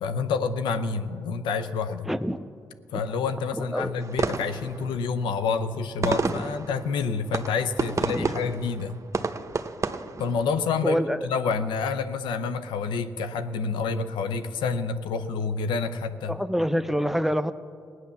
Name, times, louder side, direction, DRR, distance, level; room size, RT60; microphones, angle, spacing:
voice 1, 0.0-2.1 2.9-9.0 10.2-16.4, left 5 dB, 90° left, 9 dB, 0.6 m, -28 dB
voice 2, 2.1-2.4 3.6-3.9 6.0-6.5 8.1-8.4 10.8-11.2 16.3-17.5, equal, 5° right, 11 dB, 0.7 m, -26 dB
sound 1, 4.0-10.8, right 4 dB, 40° right, 0.9 m, -31 dB
17.0 x 9.6 x 6.9 m, 2.3 s
supercardioid pair, 50°, 8 cm